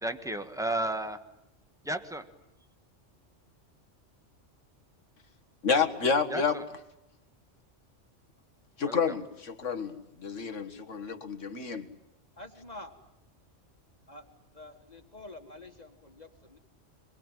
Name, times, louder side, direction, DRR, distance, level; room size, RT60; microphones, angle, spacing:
voice 1, 0.0-1.2 1.9-2.2 6.3-6.6 8.8-9.0, right 1 dB, 5° right, 1.6 m, -33 dB
voice 2, 5.6-6.6 8.8-11.9, left 5 dB, 90° left, 2.2 m, -29 dB
voice 3, 12.4-13.0 14.1-14.3 14.5-16.6, left 2 dB, 35° left, 2.0 m, -47 dB
26.0 x 23.0 x 9.2 m
omnidirectional pair, 1.2 m